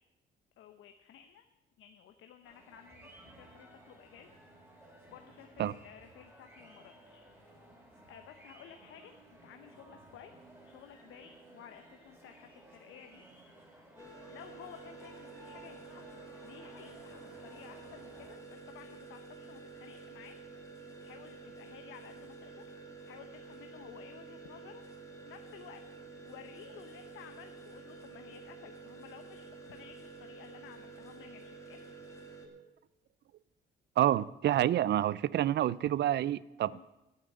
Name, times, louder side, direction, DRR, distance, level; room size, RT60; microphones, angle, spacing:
voice 1, 0.6-1.4 1.8-4.3 5.0-7.6 8.1-13.2 14.3-20.3 21.0-22.7 23.0-25.8 26.2-31.9 36.7-36.9, left 9 dB, 80° left, 0.8 m, -54 dB
sound 1, 2.4-18.4, right 1 dB, 10° right, 3.8 m, -57 dB
sound 2, 14.0-32.5, right 4 dB, 15° left, 2.3 m, -50 dB
voice 2, 34.0-36.9, right 12 dB, 60° right, 0.4 m, -28 dB
9.4 x 8.8 x 7.9 m
cardioid pair, 90°, 20 cm